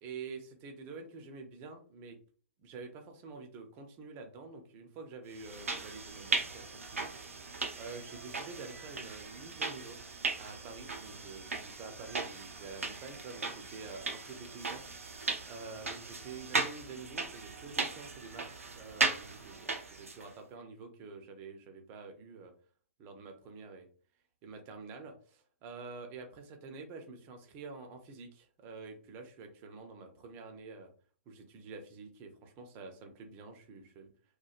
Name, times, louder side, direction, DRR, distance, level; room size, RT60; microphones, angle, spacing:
voice 1, 0.0-2.2 2.6-7.1 7.4-10.0 10.4-15.1 15.5-22.5 23.0-23.9 24.4-30.9 31.3-34.1, right 4 dB, 30° right, 5 dB, 0.7 m, -48 dB
sound 1, 5.3-20.3, right 3 dB, 85° right, 0.6 m, -37 dB
3.0 x 2.2 x 2.4 m, 0.43 s
figure-of-eight pair, 120°, 7 cm